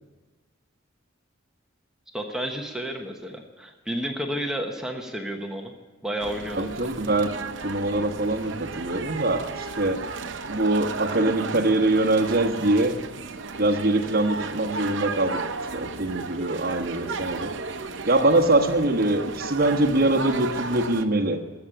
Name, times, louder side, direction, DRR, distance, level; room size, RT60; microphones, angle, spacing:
voice 1, 2.1-5.7 6.0-6.9, equal, 5° right, 2 dB, 1.1 m, -31 dB
sound 1, 6.2-21.0, right 4 dB, 65° right, 0.8 m, -34 dB
voice 2, 6.6-7.3 7.6-10.0 10.5-12.9 13.5-15.4 15.7-17.5 18.1-21.4, right 2 dB, 50° right, 3 dB, 1.3 m, -23 dB
14.0 x 7.0 x 10.0 m, 1.3 s
head